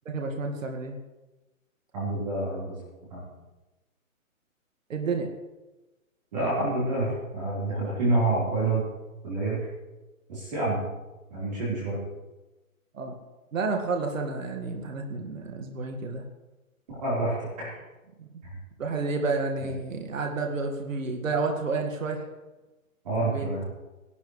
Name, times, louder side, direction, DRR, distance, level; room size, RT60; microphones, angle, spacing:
voice 1, 0.1-1.0 4.9-5.3 12.9-13.1 13.5-16.2 18.2-18.3 18.8-22.2 23.2-23.5, right 3 dB, 65° right, 3 dB, 1.9 m, -30 dB
voice 2, 1.9-2.8 3.1-3.2 6.3-8.9 9.2-9.6 10.3-10.8 11.3-12.0 16.9-17.8 18.4-18.6 19.6-19.7 23.0-23.7, right 2 dB, 30° right, -7 dB, 4.0 m, -28 dB
18.0 x 11.5 x 3.2 m, 1.1 s
hypercardioid pair, 175°, 42 cm